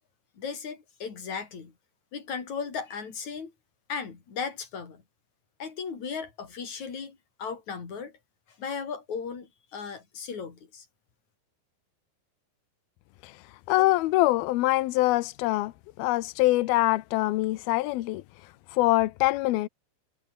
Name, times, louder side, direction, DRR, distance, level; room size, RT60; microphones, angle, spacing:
voice 1, 0.4-1.7 2.1-3.5 3.9-5.0 5.6-8.2 8.6-10.9, left 6 dB, 40° left, 5.1 m, -36 dB
voice 2, 13.7-15.7 16.0-18.2 18.7-19.7, left 18 dB, 90° left, 2.1 m, -24 dB
omnidirectional pair, 5.6 m